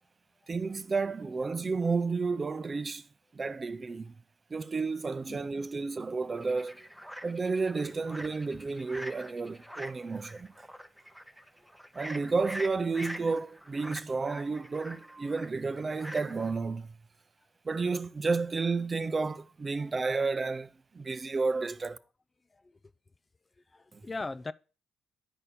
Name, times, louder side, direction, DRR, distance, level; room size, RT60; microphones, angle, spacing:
voice 1, 0.5-3.0 3.3-4.1 4.5-6.8 7.2-10.5 11.9-17.0 17.6-22.0 23.9-24.0, right 4 dB, 30° right, 0.6 m, -31 dB
sound 1, 6.4-16.6, equal, ahead, 0.9 m, -45 dB
voice 2, 23.7-24.5, left 3 dB, 25° left, 0.4 m, -39 dB
10.0 x 4.2 x 6.8 m
cardioid pair, 90°, 0 cm